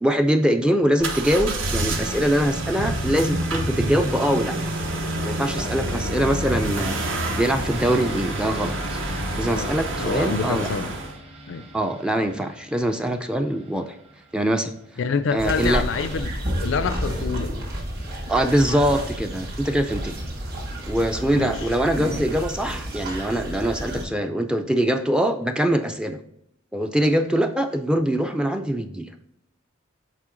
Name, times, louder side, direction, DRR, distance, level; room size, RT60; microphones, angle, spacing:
voice 1, 0.0-4.6 5.2-9.0 9.3-10.7 11.7-14.0 14.3-14.7 15.3-15.9 18.3-20.2 20.9-26.2 26.7-29.1, right 1 dB, 5° right, 0.3 m, -23 dB
sound 1, 1.0-11.2, right 1 dB, 70° right, 1.0 m, -27 dB
sound 2, 7.7-17.3 17.6-17.7, right 2 dB, 30° right, 0.9 m, -45 dB
voice 2, 9.4-10.9 11.5-11.7 15.0-16.3 16.6-17.6 21.3-21.6, left 5 dB, 65° left, 0.4 m, -27 dB
sound 3, 15.4-24.0, equal, 50° right, 2.1 m, -30 dB
7.5 x 4.3 x 3.8 m
head